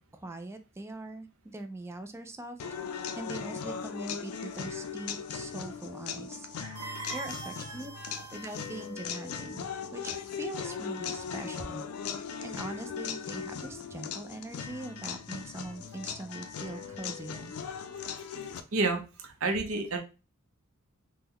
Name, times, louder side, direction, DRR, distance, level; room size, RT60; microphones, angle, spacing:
voice 1, 0.0-2.6 2.9-6.5 7.1-7.9 8.3-11.8 12.2-17.5, right 2 dB, 10° right, 8 dB, 0.3 m, -42 dB
sound 1, 2.6-18.6, left 7 dB, 90° left, 0.4 m, -38 dB
voice 2, 6.6-7.2 7.7-8.2 18.7-20.0, right 3 dB, 70° right, 5 dB, 0.7 m, -32 dB
sound 2, 6.7-9.1, right 4 dB, 35° right, 1.1 m, -45 dB
3.6 x 2.2 x 2.9 m, 0.30 s
head